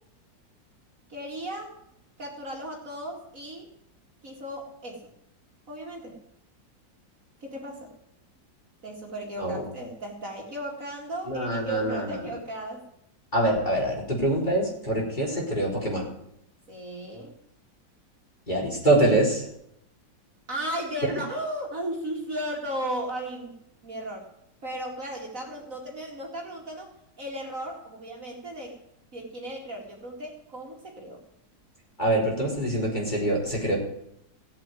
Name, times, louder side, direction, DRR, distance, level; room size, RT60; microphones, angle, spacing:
voice 1, 1.1-1.7 2.2-3.7 4.2-5.1 5.7-6.1 7.4-7.9 8.8-12.9 16.7-17.3 20.5-23.5 23.8-24.3 24.6-26.9 27.2-28.8 29.1-31.2, right 1 dB, 45° right, 0 dB, 2.7 m, -35 dB
voice 2, 11.2-12.3 13.3-16.1 18.5-19.5 32.0-33.8, right 1 dB, 25° left, -2 dB, 4.3 m, -25 dB
16.0 x 7.8 x 9.1 m, 0.76 s
omnidirectional pair, 2.0 m